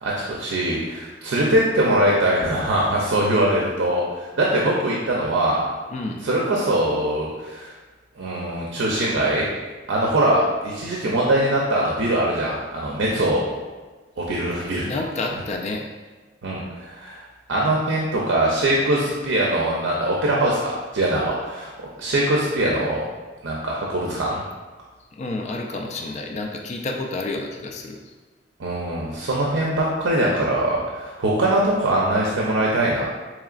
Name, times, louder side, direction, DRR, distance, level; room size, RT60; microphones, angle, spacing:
voice 1, 0.0-5.7 6.2-7.7 8.2-9.5 9.9-13.5 14.2-14.9 16.4-17.2 17.5-23.1 23.4-24.4 28.6-33.0, right 1 dB, 75° right, -3 dB, 0.5 m, -22 dB
voice 2, 14.8-15.9 25.2-28.0, left 2 dB, 40° left, 2 dB, 0.3 m, -29 dB
4.7 x 3.1 x 2.4 m, 1.3 s
head